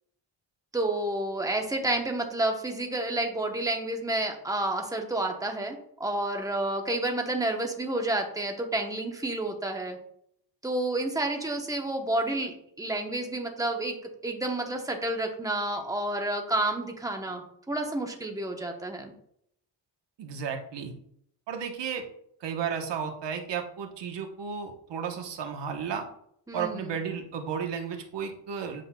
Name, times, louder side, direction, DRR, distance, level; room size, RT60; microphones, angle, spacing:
voice 1, 0.7-10.0 10.6-14.0 14.2-19.1 26.5-27.0, right 2 dB, 10° right, 3 dB, 0.9 m, -30 dB
voice 2, 20.2-20.9 21.5-22.1 22.4-26.1 26.5-28.8, right 7 dB, 70° right, 4 dB, 1.1 m, -33 dB
8.1 x 5.7 x 2.2 m, 0.69 s
wide cardioid pair, 135°, 44 cm